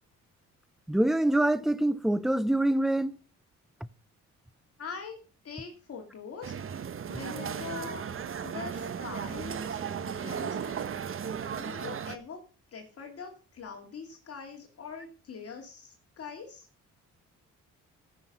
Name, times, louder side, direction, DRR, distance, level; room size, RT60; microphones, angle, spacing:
voice 1, 0.9-3.2, right 1 dB, ahead, 0.5 m, -25 dB
voice 2, 4.8-5.1 5.4-6.8 7.1-8.0 8.4-10.8 11.5-12.4 12.7-16.7, left 5 dB, 50° left, 2.5 m, -43 dB
sound 1, 6.4-12.2, right 7 dB, 45° right, 1.0 m, -35 dB
14.5 x 6.4 x 5.4 m
cardioid pair, 90°, 30 cm